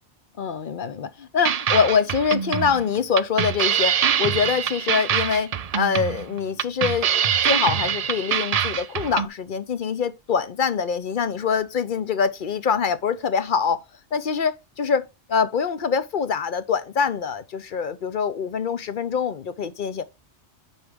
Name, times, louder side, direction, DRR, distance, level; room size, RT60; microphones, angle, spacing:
voice 1, 0.4-13.8 14.1-20.0, left 6 dB, 50° left, 0.7 m, -24 dB
sound 1, 1.4-9.3, right 8 dB, 65° right, 0.3 m, -24 dB
9.4 x 4.4 x 3.5 m
omnidirectional pair, 1.2 m